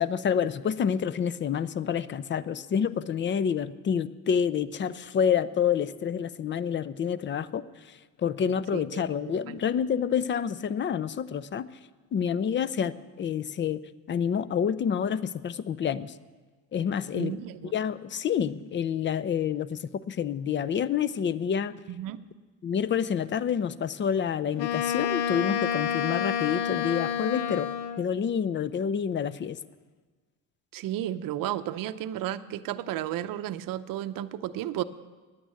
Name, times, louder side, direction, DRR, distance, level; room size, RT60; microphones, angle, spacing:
voice 1, 0.0-7.6 8.2-11.7 12.1-13.8 14.1-16.1 16.7-17.3 17.7-19.8 20.1-21.8 22.6-27.7 28.0-29.6, left 8 dB, 30° left, 17 dB, 0.5 m, -28 dB
voice 2, 8.7-9.0 9.5-9.6 17.1-17.7 21.9-22.2 30.7-34.8, right 12 dB, 60° right, 11 dB, 0.7 m, -33 dB
Wind instrument woodwind instrument, 24.6-28.1, left 8 dB, 90° left, 0.7 m, -29 dB
10.0 x 8.8 x 8.2 m, 1.4 s
supercardioid pair, 90°, 39 cm